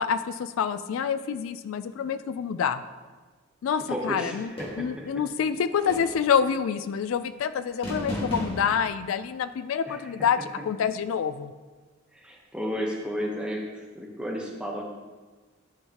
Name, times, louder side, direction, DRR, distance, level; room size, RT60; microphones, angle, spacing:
voice 1, 0.0-2.8 3.6-10.4 10.7-11.5, left 7 dB, 85° left, 12 dB, 0.3 m, -27 dB
voice 2, 3.9-5.2 9.9-10.1 12.1-14.8, equal, 5° right, -1 dB, 0.9 m, -33 dB
sound 1, 4.6-5.0 5.9-6.4 7.8-8.9, equal, 25° left, 1.7 m, -34 dB
13.0 x 4.6 x 2.9 m, 1.4 s
head